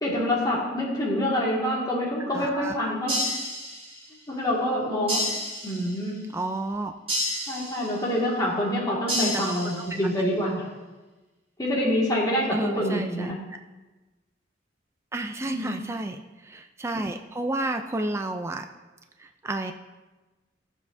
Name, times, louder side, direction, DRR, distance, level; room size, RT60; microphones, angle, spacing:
voice 1, 0.0-3.2 4.3-5.2 5.6-6.2 7.5-10.7 11.6-12.5 12.8-13.4 15.4-15.8, left 1 dB, 20° left, -5 dB, 1.9 m, -26 dB
voice 2, 2.3-2.9 6.3-6.9 9.1-9.7 12.5-13.3 15.1-18.7 19.2-19.7, right 2 dB, 15° right, 5 dB, 0.4 m, -31 dB
sound 1, 3.1-4.1 5.1-6.1 7.1-8.1 9.1-10.1, equal, 35° right, 3.5 m, -30 dB
15.5 x 7.3 x 2.6 m, 1.2 s
head